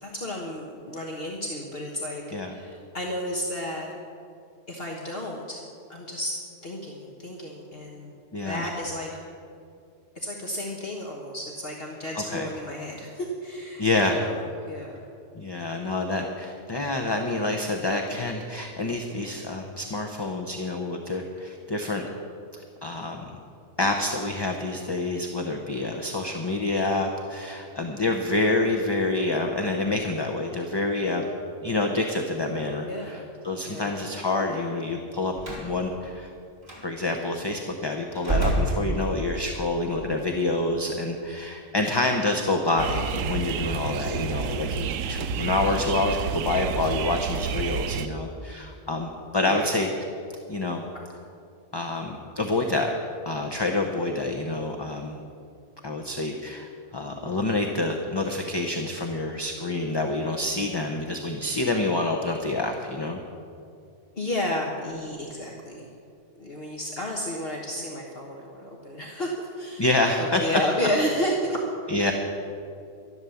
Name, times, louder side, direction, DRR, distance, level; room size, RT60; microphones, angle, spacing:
voice 1, 0.0-3.9 4.7-5.6 5.9-6.4 6.6-8.2 8.4-9.1 10.1-14.4 14.7-15.0 26.0-26.3 32.8-33.3 33.7-33.9 49.4-49.7 64.2-65.9 66.4-69.9 70.2-71.6, left 1 dB, 50° left, -1 dB, 1.5 m, -32 dB
voice 2, 8.3-8.7 12.2-12.5 13.8-14.2 15.3-22.0 22.8-23.2 23.8-31.3 31.6-36.3 36.8-49.9 50.5-50.8 51.7-52.9 53.3-55.2 55.8-63.2 69.8-70.4 71.9-72.1, left 2 dB, 25° left, 3 dB, 0.7 m, -27 dB
Slam, 35.4-35.7 36.6-36.8 38.2-39.4, right 2 dB, 45° right, 3.5 m, -27 dB
sound 1, 42.8-48.1, right 7 dB, 85° right, 0.9 m, -30 dB
12.5 x 11.0 x 7.1 m, 2.5 s
omnidirectional pair, 1.3 m